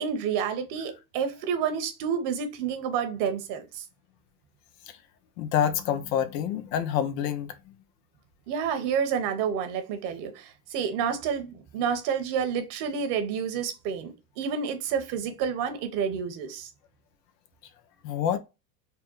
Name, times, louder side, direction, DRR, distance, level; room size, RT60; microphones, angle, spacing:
voice 1, 0.0-3.8 8.5-16.7, right 7 dB, 50° right, 1.2 m, -29 dB
voice 2, 5.4-7.5 18.0-18.4, left 9 dB, 75° left, 0.8 m, -27 dB
4.1 x 2.1 x 3.9 m
supercardioid pair, 110°, 50 cm